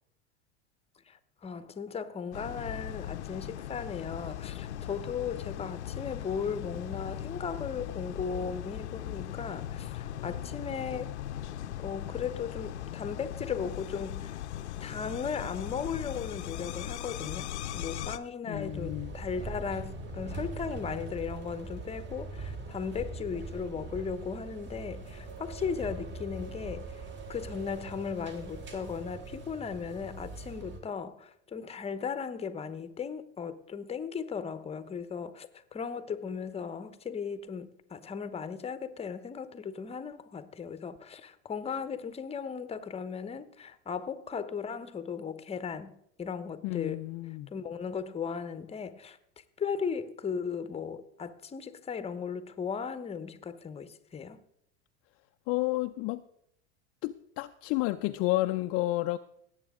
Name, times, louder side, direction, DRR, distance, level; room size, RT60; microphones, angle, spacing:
voice 1, 1.1-11.1 11.8-14.4 14.8-27.0 27.3-47.1 47.5-49.2 49.6-54.4, left 6 dB, 20° left, 0.9 m, -37 dB
sound 1, 2.3-18.2, left 11 dB, 80° left, 0.8 m, -39 dB
voice 2, 18.5-19.1 46.6-47.5 55.5-56.2 57.0-59.2, left 18 dB, 45° left, 0.5 m, -31 dB
sound 2, 18.5-30.8, right 2 dB, 35° right, 2.7 m, -42 dB
18.0 x 8.1 x 3.7 m
hypercardioid pair, 95°, 34 cm